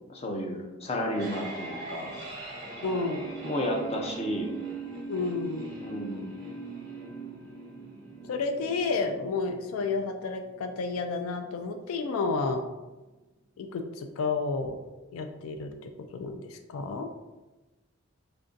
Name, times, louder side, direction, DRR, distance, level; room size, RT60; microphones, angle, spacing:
voice 1, 0.1-2.1 3.4-4.5 5.8-6.4, equal, 30° left, 1 dB, 0.5 m, -32 dB
sound 1, 0.8-11.8, right 3 dB, 15° right, 0.7 m, -41 dB
voice 2, 2.8-3.3 5.1-5.7 8.2-12.6 13.6-14.8 15.1-17.1, left 4 dB, 85° left, 5 dB, 0.3 m, -31 dB
3.3 x 2.6 x 3.7 m, 1.1 s
head